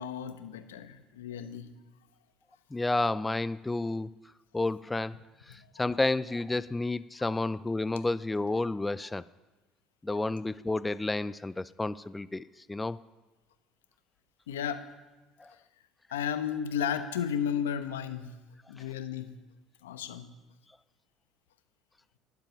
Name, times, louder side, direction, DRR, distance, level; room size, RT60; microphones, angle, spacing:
voice 1, 0.0-1.7 7.2-7.3 10.1-10.3 14.5-14.8 16.1-18.3 18.7-19.3 19.8-20.3, left 8 dB, 85° left, 0.9 m, -33 dB
voice 2, 2.7-4.1 4.5-5.2 5.5-9.2 10.0-13.0 15.4-15.5, left 2 dB, 15° left, 0.4 m, -31 dB
12.0 x 10.5 x 5.9 m
hypercardioid pair, 70°, 0 cm